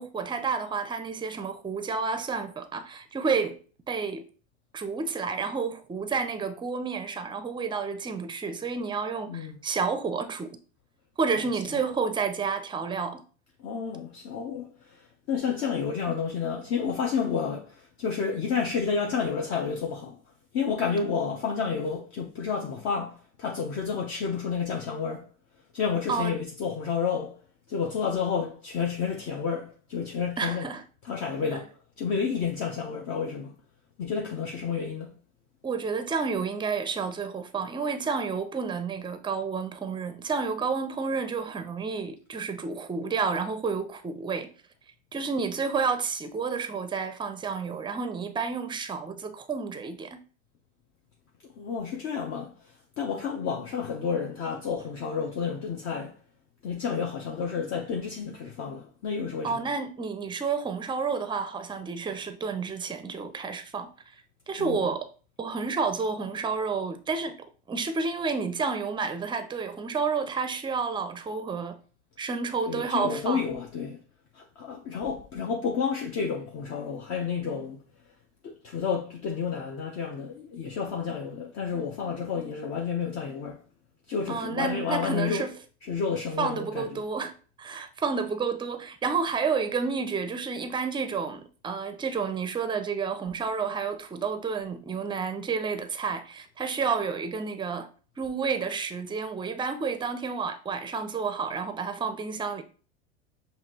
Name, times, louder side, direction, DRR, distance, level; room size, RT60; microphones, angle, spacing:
voice 1, 0.0-3.6 3.9-4.2 4.7-10.5 11.2-13.2 26.1-26.3 30.4-30.8 35.6-44.5 45.1-50.2 59.4-63.9 64.5-65.1 65.4-67.3 67.7-71.8 72.2-73.5 84.3-85.5 86.4-87.3 87.6-97.9 98.2-102.6, right 5 dB, 15° right, 0.5 m, -30 dB
voice 2, 13.6-20.2 20.5-25.3 25.7-27.4 27.7-30.7 31.0-33.5 34.0-35.1 51.6-52.5 53.0-56.2 56.6-59.6 64.6-64.8 72.7-74.0 74.3-77.8 78.4-83.6 84.1-85.4 85.9-87.0, left 6 dB, 45° left, 0.8 m, -30 dB
5.7 x 2.7 x 2.8 m
hypercardioid pair, 95°, 36 cm